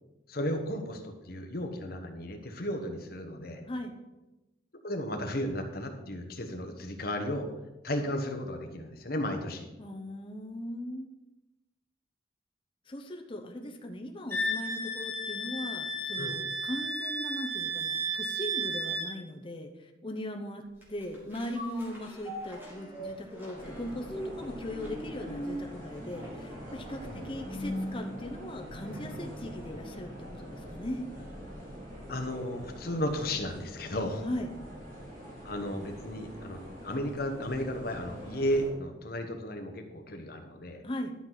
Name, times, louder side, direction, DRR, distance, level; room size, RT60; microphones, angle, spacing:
voice 1, 0.3-3.7 4.8-7.5 7.8-9.7 16.2-16.4 27.0-27.2 32.1-34.3 35.4-40.8, left 1 dB, 55° left, 5 dB, 1.1 m, -34 dB
voice 2, 9.8-11.1 12.9-31.1 34.2-34.5 40.8-41.1, left 1 dB, 30° left, 3 dB, 0.8 m, -39 dB
Wind instrument woodwind instrument, 14.3-19.1, right 2 dB, 10° left, 1.9 m, -33 dB
sound 1, 20.8-29.4 29.8-29.9, equal, 10° right, 2.3 m, -41 dB
sound 2, 23.5-38.7, equal, 45° right, 3.0 m, -45 dB
12.0 x 6.0 x 4.0 m, 1.0 s
head